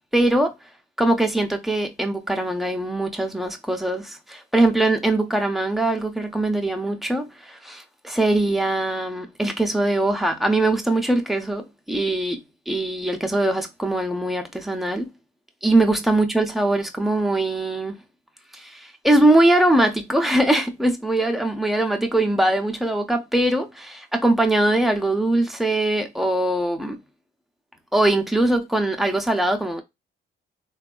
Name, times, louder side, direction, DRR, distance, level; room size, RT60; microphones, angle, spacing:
voice 1, 0.1-0.5 1.0-15.1 15.6-18.0 18.5-27.0 27.9-29.8, right 1 dB, ahead, 0.6 m, -22 dB
3.3 x 2.3 x 2.3 m
cardioid pair, 90°, 20 cm